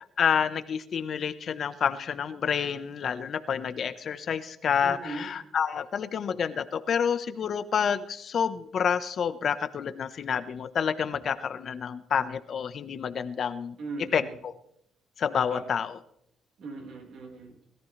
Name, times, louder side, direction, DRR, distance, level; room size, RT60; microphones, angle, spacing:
voice 1, 0.2-13.7 14.1-14.5 15.2-16.0, left 7 dB, 55° left, 11 dB, 1.1 m, -28 dB
voice 2, 4.8-5.3 13.8-14.3 15.5-15.7 16.6-17.6, right 3 dB, 70° right, 1 dB, 4.6 m, -39 dB
21.5 x 13.5 x 3.3 m, 0.72 s
cardioid pair, 90°, 0 cm